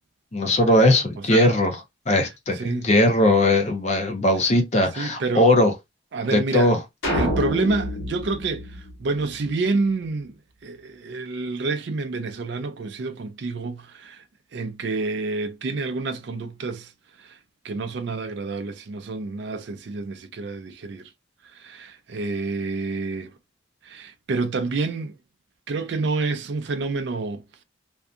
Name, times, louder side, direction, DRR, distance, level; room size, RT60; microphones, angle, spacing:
voice 1, 0.3-1.7 2.1-5.7 6.3-6.8, left 1 dB, 35° left, 0.6 m, -19 dB
voice 2, 1.2-1.6 2.5-2.9 5.0-5.5 6.1-6.7 7.1-10.3 10.6-14.2 14.5-16.9 17.2-17.4 17.6-21.1 21.4-23.4 23.8-25.1 25.7-27.6, right 3 dB, 55° right, 0.4 m, -28 dB
sound 1, 7.0-9.5, left 1 dB, 80° left, 1.0 m, -28 dB
2.6 x 2.3 x 2.4 m
head